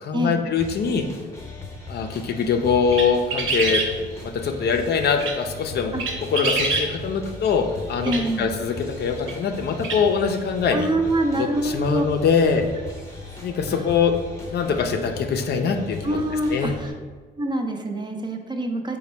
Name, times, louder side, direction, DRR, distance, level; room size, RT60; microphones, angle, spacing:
voice 1, 0.0-1.1 1.9-3.8 4.2-5.9 6.3-10.9 11.3-12.6 13.4-14.1 14.5-16.2 16.5-16.7, left 6 dB, 55° left, 5 dB, 0.4 m, -23 dB
sound 1, 0.5-16.9, left 3 dB, 15° left, 0.8 m, -38 dB
sound 2, 2.9-3.9 5.0-5.4 6.0-6.9 8.1-8.2 9.3-9.4 9.8-10.0, right 3 dB, 75° right, 0.7 m, -25 dB
voice 2, 8.0-8.4 10.7-12.1 13.7-13.8 16.0-16.9 17.4-19.0, right 1 dB, 20° right, 4 dB, 0.4 m, -25 dB
4.0 x 2.2 x 4.3 m, 1.4 s
cardioid pair, 90°, 20 cm